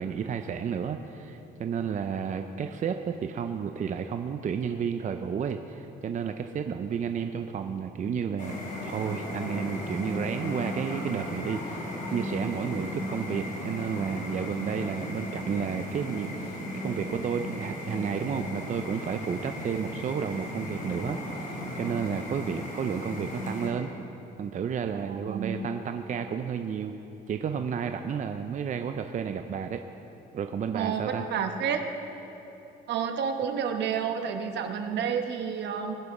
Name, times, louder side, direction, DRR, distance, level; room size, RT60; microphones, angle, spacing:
voice 1, 0.0-8.5 8.8-23.9 24.4-26.9 27.3-29.8 30.3-31.3, right 7 dB, 45° right, 7 dB, 0.5 m, -32 dB
sound 1, 8.4-23.7, left 1 dB, 50° left, 3.4 m, -36 dB
voice 2, 24.9-25.6 30.7-31.8 32.9-36.0, right 7 dB, 75° right, 6 dB, 1.1 m, -30 dB
20.5 x 6.8 x 5.4 m, 3.0 s
cardioid pair, 120°, 18 cm